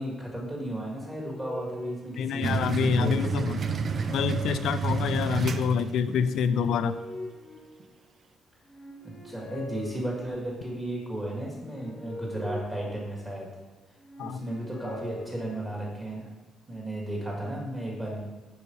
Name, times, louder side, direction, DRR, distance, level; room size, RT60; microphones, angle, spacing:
voice 1, 0.0-3.5 9.0-13.5 14.2-16.3 16.7-18.2, right 1 dB, 15° right, -3 dB, 2.1 m, -34 dB
sound 1, 0.7-2.8 3.3-5.3 6.0-8.2 8.6-10.7 11.4-13.5 14.0-16.0, left 1 dB, 15° left, 1.1 m, -43 dB
voice 2, 2.2-3.6 4.1-7.0 14.2-14.4, left 7 dB, 70° left, 12 dB, 0.4 m, -27 dB
sound 2, 2.4-6.3, right 5 dB, 40° right, 0.4 m, -29 dB
5.6 x 5.5 x 4.6 m, 1.2 s
cardioid pair, 140°, 0 cm